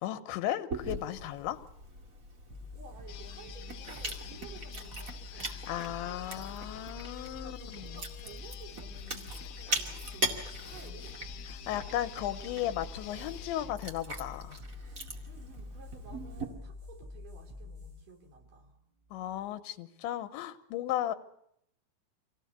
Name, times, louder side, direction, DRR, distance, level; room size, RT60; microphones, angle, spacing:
voice 1, 0.0-1.6 5.4-8.0 11.7-14.6 19.1-21.2, left 12 dB, 85° left, 11 dB, 3.4 m, -35 dB
Chewing mastication, 0.7-16.4, right 1 dB, 30° right, 1.5 m, -41 dB
sound 1, 2.5-19.6, left 3 dB, 85° right, 8.1 m, -47 dB
voice 2, 2.7-6.8 7.3-11.2 15.2-18.8, right 5 dB, 50° right, 3 dB, 4.3 m, -54 dB
sound 2, 3.1-13.7, left 11 dB, 70° left, 2.3 m, -49 dB
26.0 x 18.0 x 8.2 m, 0.73 s
omnidirectional pair, 5.2 m